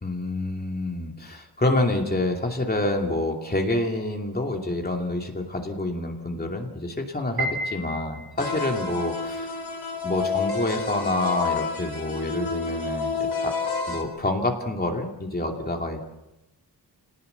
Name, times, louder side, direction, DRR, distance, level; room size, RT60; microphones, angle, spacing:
voice 1, 0.0-9.6 10.0-13.5 13.9-16.0, left 2 dB, 25° left, 2 dB, 2.7 m, -27 dB
Piano, 7.4-8.7, right 1 dB, 70° right, 5.1 m, -31 dB
sound 1, 8.4-14.0, left 4 dB, 65° left, 4.4 m, -29 dB
28.0 x 18.5 x 8.1 m, 0.94 s
wide cardioid pair, 150°, 40 cm